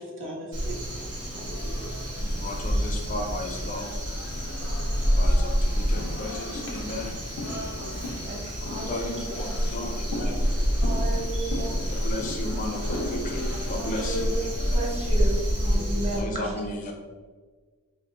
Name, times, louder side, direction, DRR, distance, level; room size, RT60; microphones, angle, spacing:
voice 1, 0.0-2.0 15.7-16.5, right 1 dB, 60° right, -2 dB, 0.9 m, -40 dB
Crow, 0.5-16.2, equal, 85° right, 1.4 m, -28 dB
sound 1, 1.1-15.9, left 1 dB, 90° left, 0.6 m, -39 dB
voice 2, 2.2-3.9 5.2-7.2 8.6-10.4 11.9-14.3 16.1-16.9, left 1 dB, 35° left, 2 dB, 0.5 m, -35 dB
voice 3, 8.3-9.7 10.7-11.8 13.7-16.5, right 2 dB, 30° right, -3 dB, 0.9 m, -34 dB
4.6 x 2.1 x 3.7 m, 1.4 s
head